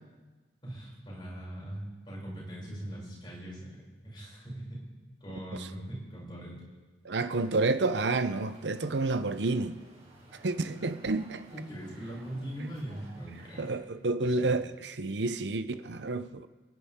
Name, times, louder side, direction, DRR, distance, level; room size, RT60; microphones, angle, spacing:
voice 1, 0.6-3.7 4.0-4.8 5.2-6.6 11.5-13.7 14.2-14.5, right 1 dB, 25° left, 6.6 m, -41 dB
voice 2, 7.0-9.8 10.4-11.4 13.6-16.5, right 3 dB, 75° right, 0.7 m, -29 dB
sound 1, 7.3-13.7, right 1 dB, 35° right, 4.9 m, -55 dB
29.5 x 11.0 x 3.7 m
head